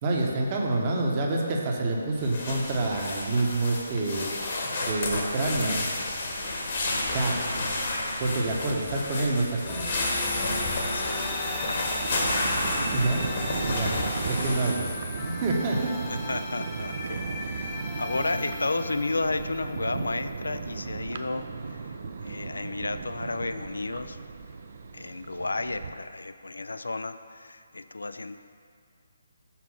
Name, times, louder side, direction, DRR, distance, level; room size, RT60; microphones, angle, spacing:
voice 1, 0.0-5.8 7.1-7.4 8.2-9.9 12.9-13.2 13.7-13.9 14.3-16.0, right 2 dB, 30° right, -1 dB, 1.0 m, -27 dB
sound 1, 2.2-14.7, left 2 dB, 45° left, 1.3 m, -31 dB
sound 2, 2.8-4.6 9.7-20.6, left 2 dB, 20° left, 0.8 m, -37 dB
voice 2, 10.9-11.9 16.1-22.0 22.2-24.2 24.9-28.4, left 3 dB, 75° left, 11 dB, 0.3 m, -33 dB
Thunder, 11.1-25.9, right 5 dB, 50° right, 0.5 m, -36 dB
5.9 x 4.7 x 5.8 m, 2.2 s
figure-of-eight pair, 145°, 0 cm